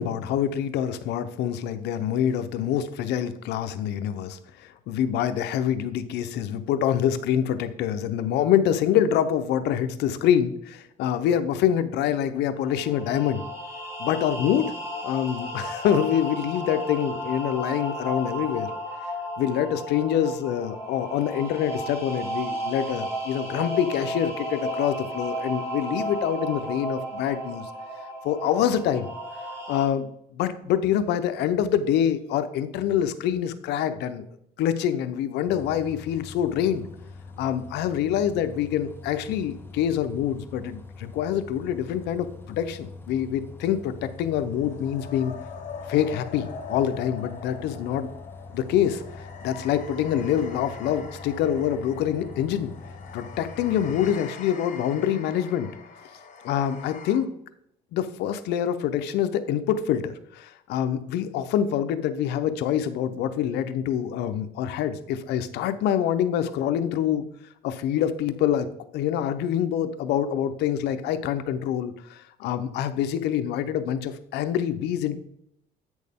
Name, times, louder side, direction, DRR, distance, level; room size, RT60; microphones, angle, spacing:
voice 1, 0.0-13.4 14.0-14.7 15.0-18.7 19.4-27.7 28.2-29.1 29.7-34.2 34.6-36.8 37.4-45.3 45.9-48.1 48.5-52.7 53.1-55.7 56.4-57.3 57.9-67.2 67.6-68.7 68.9-75.2, left 9 dB, 80° left, 10 dB, 0.7 m, -26 dB
sound 1, 12.6-29.9, equal, 15° right, 3.5 m, -34 dB
Bus, 35.5-54.2, left 4 dB, 15° left, 0.8 m, -44 dB
sound 2, 43.5-57.2, left 6 dB, 50° left, 1.3 m, -42 dB
8.5 x 6.3 x 3.6 m, 0.74 s
cardioid pair, 110°, 17 cm